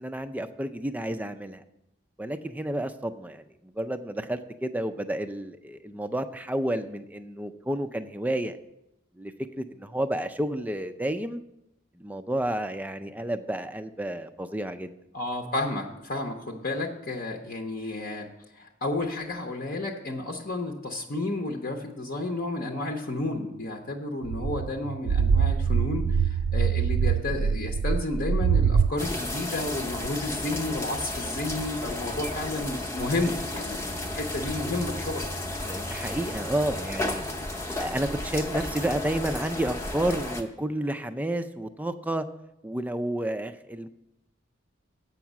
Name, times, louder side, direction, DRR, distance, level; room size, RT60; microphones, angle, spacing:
voice 1, 0.0-1.6 2.2-8.6 9.2-11.4 12.0-14.9 35.6-37.2 37.8-42.2 42.6-43.9, right 1 dB, 10° right, 10 dB, 0.4 m, -31 dB
voice 2, 15.1-18.3 18.5-35.3, left 2 dB, 45° left, 2 dB, 0.8 m, -32 dB
sound 1, 24.2-28.9, right 6 dB, 85° right, 0.3 m, -24 dB
sound 2, 29.0-40.4, left 1 dB, 15° left, 0.7 m, -33 dB
8.0 x 5.9 x 7.3 m, 0.88 s
head